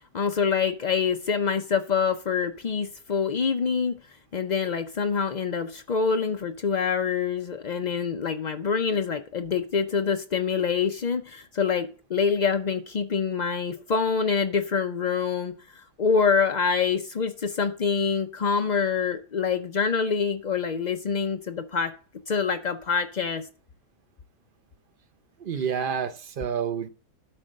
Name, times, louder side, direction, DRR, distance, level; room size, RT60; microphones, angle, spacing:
voice 1, 0.0-4.0 4.3-15.5 16.0-21.9 22.3-23.5, left 6 dB, 80° left, 0.3 m, -26 dB
voice 2, 25.4-26.9, right 7 dB, 45° right, 0.7 m, -29 dB
12.0 x 4.4 x 6.4 m
omnidirectional pair, 1.7 m